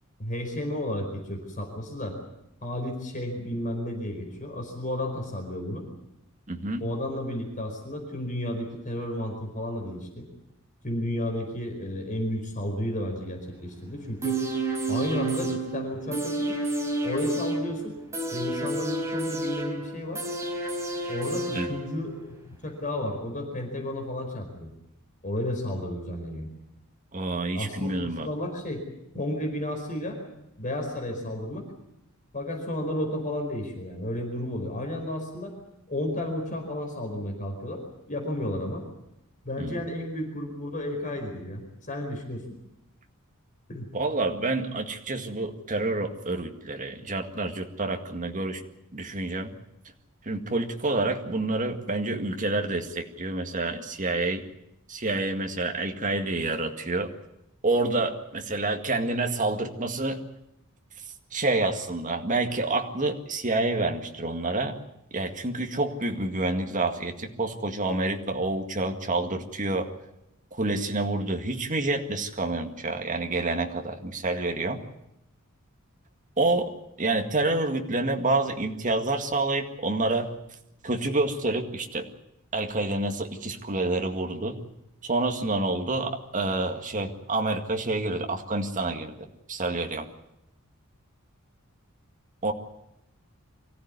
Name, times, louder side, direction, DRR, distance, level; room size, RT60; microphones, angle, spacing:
voice 1, 0.2-2.2 2.6-5.8 6.8-10.3 10.8-14.4 14.9-16.6 17.0-17.9 18.3-20.2 21.1-24.7 25.2-26.5 27.5-28.9 29.1-30.2 30.6-31.7 32.3-35.5 35.9-37.8 38.1-38.8 39.4-42.4 43.7-43.9, left 1 dB, 35° left, 3 dB, 4.8 m, -32 dB
voice 2, 6.5-6.8 21.5-21.7 27.1-28.3 39.6-39.8 43.9-48.6 48.9-49.5 50.2-54.4 54.9-57.1 57.6-60.2 61.3-64.8 65.1-69.9 70.5-74.8 76.4-80.3 80.8-82.1 82.5-84.6 85.0-89.1 89.5-90.1 92.4-92.5, right 2 dB, 35° right, 4 dB, 2.0 m, -28 dB
sound 1, 14.2-22.2 22.5-22.6, right 2 dB, 15° right, 4.7 m, -30 dB
24.5 x 15.5 x 9.6 m, 0.85 s
head